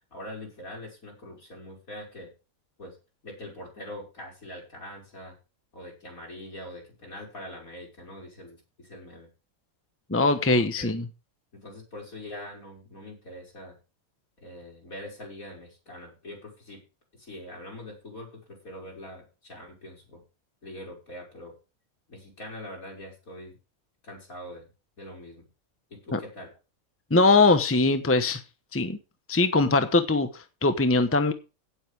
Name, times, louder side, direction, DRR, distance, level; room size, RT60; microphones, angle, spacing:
voice 1, 0.1-2.3 2.8-3.0 3.2-5.4 5.7-9.3 10.5-10.9 11.5-13.8 14.4-16.8 17.2-20.2 20.6-21.5 22.1-23.6 24.0-24.7 25.0-25.5 25.9-26.5, left 1 dB, 75° left, 6.3 m, -43 dB
voice 2, 10.1-11.0 26.1-26.2 27.1-28.4 28.7-29.0 29.3-31.3, left 3 dB, 10° left, 0.9 m, -21 dB
17.5 x 7.8 x 3.5 m
omnidirectional pair, 1.5 m